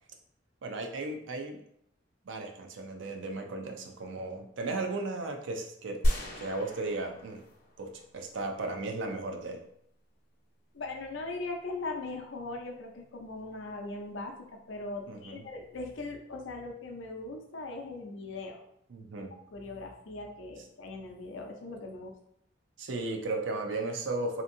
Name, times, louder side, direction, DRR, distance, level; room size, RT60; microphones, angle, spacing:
voice 1, 0.6-1.6 2.3-6.0 6.4-7.4 7.8-9.6 15.1-15.4 18.9-19.3 22.8-24.4, right 2 dB, 80° right, 3 dB, 0.5 m, -35 dB
sound 1, 6.0-8.3, equal, 55° left, 0.8 m, -32 dB
voice 2, 10.7-18.6 19.5-22.1, left 2 dB, 85° left, 2 dB, 0.5 m, -40 dB
2.8 x 2.6 x 2.6 m, 0.73 s
head